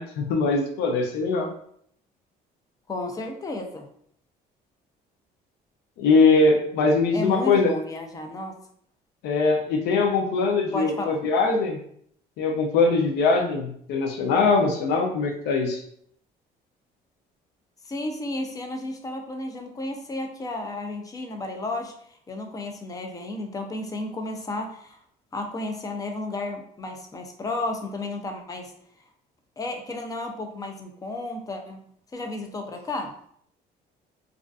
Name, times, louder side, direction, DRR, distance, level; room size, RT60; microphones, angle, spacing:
voice 1, 0.0-1.5 6.0-7.7 9.2-11.8 12.4-15.8, left 3 dB, 80° left, 2 dB, 0.5 m, -22 dB
voice 2, 2.9-3.9 7.1-8.5 10.7-11.2 17.8-21.9 22.3-25.0 25.3-28.7 29.6-31.8 32.1-33.1, left 2 dB, 20° left, 3 dB, 0.4 m, -32 dB
2.4 x 2.3 x 2.3 m, 0.65 s
cardioid pair, 110°, 17 cm